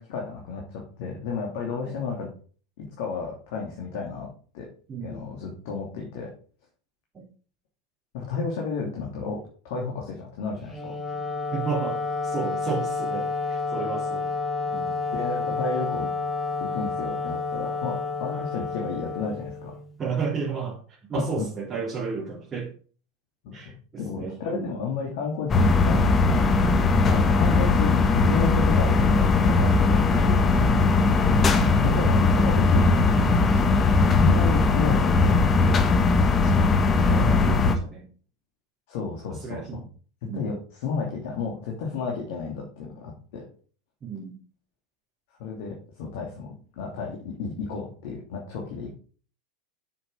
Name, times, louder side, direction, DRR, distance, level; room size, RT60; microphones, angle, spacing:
voice 1, 0.0-2.3 2.8-4.3 4.5-4.7 5.0-6.3 8.1-11.0 15.1-16.1 16.6-19.8 21.1-21.5 23.4-23.5 24.0-26.6 27.1-30.4 31.2-33.7 34.0-35.8 38.9-39.8 40.3-43.4 45.4-46.5 46.8-48.9, left 5 dB, 60° left, -1 dB, 2.7 m, -32 dB
voice 2, 4.9-5.2 11.5-14.3 14.7-15.0 18.3-18.5 20.0-20.8 21.1-22.7 23.5-24.8 27.0-27.5 30.1-30.3 30.7-31.1 36.4-36.7 37.0-38.1 39.3-39.8 40.2-40.6 44.0-44.4, right 5 dB, 25° right, -5 dB, 3.7 m, -33 dB
Wind instrument woodwind instrument, 10.6-19.9, left 4 dB, 5° left, 3.7 m, -30 dB
sound 1, 25.5-37.7, left 3 dB, 25° left, 1.5 m, -19 dB
8.7 x 6.9 x 5.0 m, 0.41 s
figure-of-eight pair, 85°, 0 cm